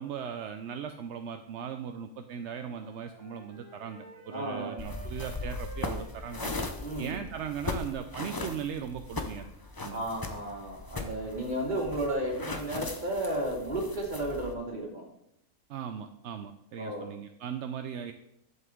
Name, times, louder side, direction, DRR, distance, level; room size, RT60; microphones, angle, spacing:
voice 1, 0.0-6.5 7.0-9.5 9.8-10.0 15.7-18.1, right 8 dB, 65° right, 7 dB, 0.8 m, -38 dB
Wind instrument woodwind instrument, 2.5-8.0, right 2 dB, 10° right, 3.5 m, -51 dB
voice 2, 4.3-4.7 6.8-7.2 9.9-15.0 16.8-17.1, right 1 dB, 30° right, -2 dB, 2.5 m, -33 dB
sound 1, 4.8-14.5, left 2 dB, 25° left, 0.5 m, -38 dB
11.0 x 7.7 x 3.7 m, 0.77 s
omnidirectional pair, 1.5 m